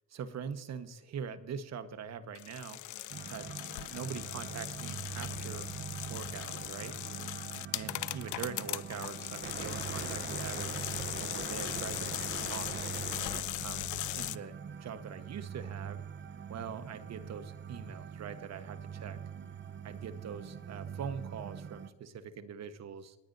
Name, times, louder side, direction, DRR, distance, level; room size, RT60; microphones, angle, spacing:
voice 1, 0.1-2.8 3.3-3.5 3.9-5.7 6.1-6.9 7.7-10.9 11.1-12.9 13.6-16.0 16.5-19.2 19.8-23.2, right 7 dB, 60° right, 10 dB, 1.2 m, -43 dB
sound 1, 2.4-14.4, left 16 dB, 75° left, 0.5 m, -39 dB
sound 2, 3.1-21.9, right 7 dB, 40° right, 0.8 m, -43 dB
28.5 x 10.5 x 2.7 m, 1.1 s
cardioid pair, 90°, 30 cm